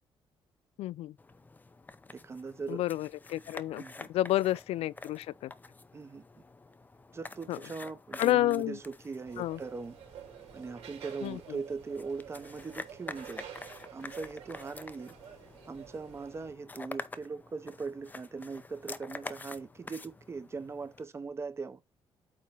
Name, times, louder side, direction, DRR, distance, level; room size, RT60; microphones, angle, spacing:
voice 1, 0.8-1.1 2.7-3.8 4.1-5.5 7.5-7.6 8.2-8.8 9.4-9.6 11.2-11.4, left 15 dB, 80° left, 0.4 m, -30 dB
sound 1, 1.2-21.0, left 3 dB, 15° left, 0.5 m, -48 dB
voice 2, 2.1-2.8 3.8-4.1 5.9-6.2 7.1-10.0 10.5-13.4 13.9-15.1 15.7-21.8, right 4 dB, 25° right, 0.8 m, -40 dB
sound 2, 9.2-16.5, right 8 dB, 75° right, 4.2 m, -50 dB
8.6 x 3.1 x 5.4 m
cardioid pair, 140°, 10 cm